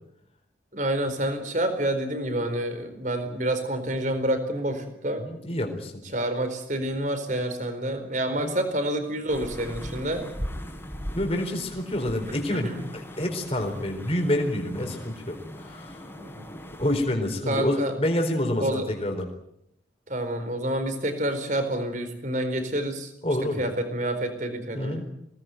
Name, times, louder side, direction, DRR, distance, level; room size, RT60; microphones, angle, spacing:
voice 1, 0.7-5.3 6.1-10.3 12.3-12.4 12.6-12.9 16.2-16.5 17.5-17.9 18.6-18.9 20.1-23.1 23.6-25.0, right 1 dB, 45° right, 8 dB, 4.4 m, -28 dB
voice 2, 5.2-6.0 8.4-8.5 11.2-16.0 16.8-19.3 23.2-23.6 24.7-25.1, left 1 dB, 30° left, 3 dB, 4.2 m, -28 dB
sound 1, 9.3-17.0, equal, 15° left, 3.9 m, -39 dB
23.0 x 18.5 x 9.3 m, 0.78 s
head